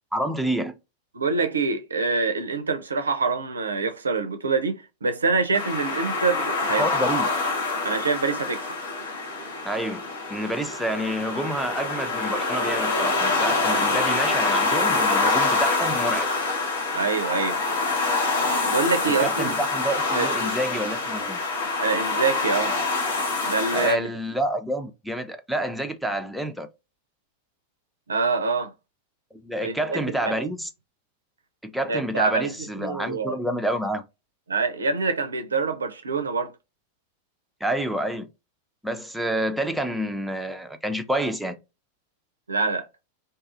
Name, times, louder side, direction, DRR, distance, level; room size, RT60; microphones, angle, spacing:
voice 1, 0.1-0.7 6.8-7.3 9.6-10.0 10.3-16.3 19.1-21.4 23.7-26.7 29.4-30.7 31.6-34.0 37.6-38.3 38.8-41.6, right 1 dB, ahead, 0.4 m, -28 dB
voice 2, 1.1-6.9 7.8-8.6 16.9-17.6 18.6-19.5 20.1-20.6 21.8-22.8 23.5-24.1 28.1-28.7 29.6-30.5 31.9-32.5 32.8-33.4 34.5-36.5 42.5-42.9, right 4 dB, 75° right, 0.4 m, -25 dB
sound 1, 5.5-23.9, left 3 dB, 70° left, 0.9 m, -25 dB
2.6 x 2.3 x 2.4 m
figure-of-eight pair, 90°, 0 cm